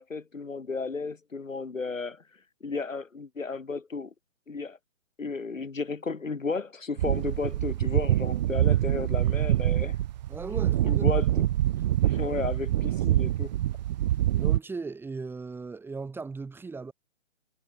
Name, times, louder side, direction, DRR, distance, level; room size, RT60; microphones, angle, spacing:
voice 1, 0.0-2.2 2.6-4.1 4.5-4.8 5.2-10.0 10.5-11.5 12.0-13.6, left 4 dB, 75° left, 7.2 m, -33 dB
sound 1, 7.0-14.6, right 13 dB, 30° right, 1.7 m, -25 dB
voice 2, 10.3-11.0 14.3-16.9, right 4 dB, 5° right, 5.2 m, -37 dB
figure-of-eight pair, 135°, 40 cm